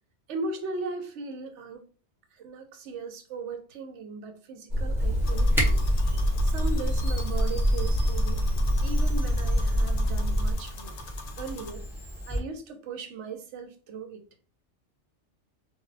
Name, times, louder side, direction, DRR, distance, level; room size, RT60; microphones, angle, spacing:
voice 1, 0.3-1.9 2.3-5.9 6.4-8.5 8.8-11.0 11.4-11.9 12.3-14.2, right 3 dB, 80° right, 0.9 m, -38 dB
sound 1, 4.7-10.6, equal, 50° right, 0.8 m, -25 dB
Camera, 5.0-12.4, equal, 5° right, 0.6 m, -36 dB
sound 2, 5.2-11.7, left 4 dB, 70° left, 0.9 m, -44 dB
2.3 x 2.0 x 3.8 m
omnidirectional pair, 1.2 m